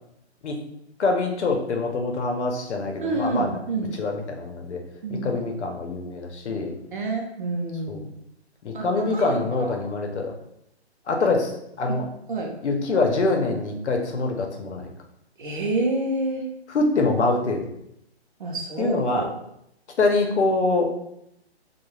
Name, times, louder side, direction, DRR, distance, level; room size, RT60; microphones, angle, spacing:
voice 1, 1.0-3.6 4.0-4.8 5.1-6.7 7.9-8.0 8.6-10.3 11.1-12.1 12.6-14.9 16.7-17.6 18.8-19.3 20.0-20.9, left 3 dB, 90° left, 3 dB, 0.7 m, -24 dB
voice 2, 3.0-3.9 5.0-5.3 6.9-8.0 8.7-9.7 11.9-12.0 12.3-12.5 15.4-16.5 18.4-19.3, right 2 dB, 50° right, 1 dB, 0.6 m, -28 dB
2.3 x 2.3 x 3.1 m, 0.79 s
hypercardioid pair, 170°, 33 cm